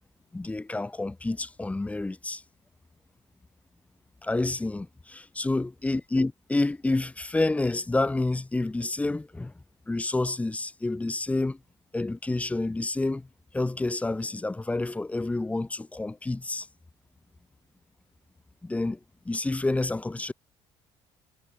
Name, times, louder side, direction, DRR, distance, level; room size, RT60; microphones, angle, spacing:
voice 1, 0.3-2.4 4.2-9.5 9.9-11.6 11.9-13.3 13.5-16.7 18.6-19.0 19.2-20.3, left 2 dB, 10° left, 1.3 m, -29 dB
cardioid pair, 110°, 11 cm